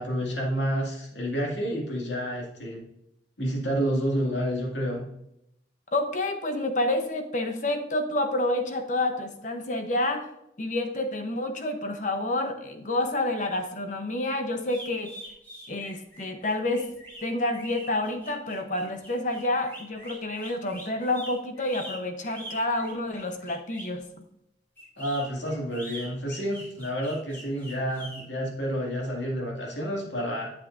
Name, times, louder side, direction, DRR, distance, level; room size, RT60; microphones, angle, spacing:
voice 1, 0.0-2.8 3.4-5.0 25.0-30.5, equal, 85° left, -1 dB, 2.2 m, -29 dB
voice 2, 5.9-10.3 10.6-15.1 15.7-16.9 17.2-24.0, left 1 dB, 45° left, 6 dB, 0.9 m, -29 dB
sound 1, 14.7-24.0 24.8-28.2, equal, 10° left, 2.2 m, -43 dB
8.5 x 7.7 x 2.6 m, 0.82 s
head